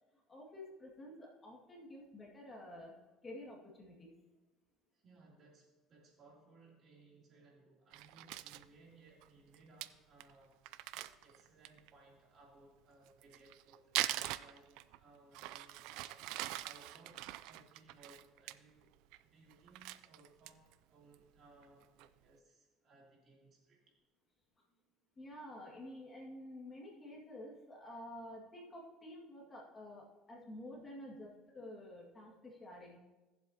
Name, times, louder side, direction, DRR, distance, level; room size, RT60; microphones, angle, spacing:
voice 1, 0.3-3.0 3.2-4.2 25.2-33.0, left 1 dB, 25° left, -2 dB, 2.1 m, -50 dB
voice 2, 4.9-10.5 10.9-24.0, right 3 dB, 40° right, -3 dB, 3.0 m, -63 dB
Crumpling crinkling, 7.9-8.7 9.2-9.3 9.5-9.6 9.8-9.9 10.2-10.3 10.7-11.9 13.1-15.0 15.3-18.5 18.9-19.2 19.5-20.7 21.1-21.2 21.6-22.1, right 16 dB, 80° right, 0.4 m, -42 dB
17.0 x 7.5 x 2.9 m, 1.2 s
cardioid pair, 120°, 0 cm